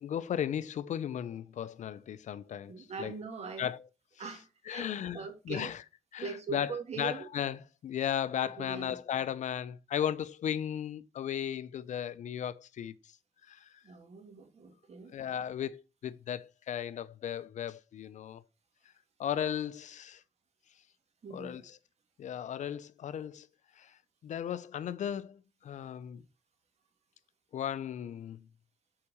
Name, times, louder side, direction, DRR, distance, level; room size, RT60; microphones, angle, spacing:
voice 1, 0.0-3.1 3.6-3.8 4.7-5.8 6.1-13.1 13.5-13.8 15.1-18.4 19.2-20.2 21.3-21.8 22.2-23.5 23.8-24.0 24.2-26.2 27.5-28.4, left 9 dB, 70° left, 0.5 m, -36 dB
voice 2, 2.7-3.7 4.2-5.7 6.2-7.3 8.3-9.0 13.8-15.1 21.2-21.6, right 5 dB, 55° right, 1.9 m, -42 dB
5.8 x 4.7 x 6.4 m
cardioid pair, 75°, 13 cm